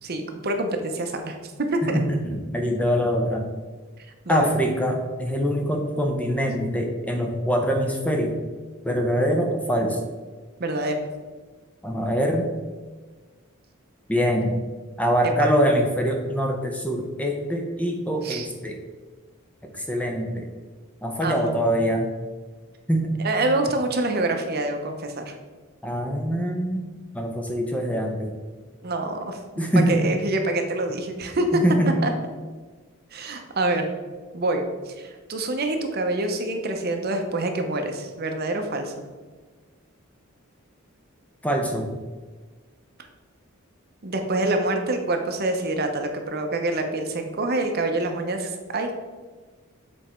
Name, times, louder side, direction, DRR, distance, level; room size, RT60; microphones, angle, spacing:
voice 1, 0.0-1.4 1.7-2.0 4.3-4.5 10.6-10.9 15.2-15.3 18.2-18.5 21.2-21.5 23.2-25.3 28.8-29.4 29.9-31.6 32.0-32.1 33.1-33.9 34.3-38.9 44.0-48.9, right 2 dB, 50° right, 5 dB, 0.8 m, -26 dB
voice 2, 1.8-3.5 4.3-8.4 8.8-10.0 11.8-12.5 14.1-14.5 15.0-18.8 19.6-20.5 21.0-22.1 22.9-23.1 25.8-26.8 27.1-28.3 29.6-30.0 31.5-32.0 41.4-41.9, equal, 5° left, 2 dB, 0.6 m, -24 dB
7.2 x 4.2 x 4.3 m, 1.4 s
head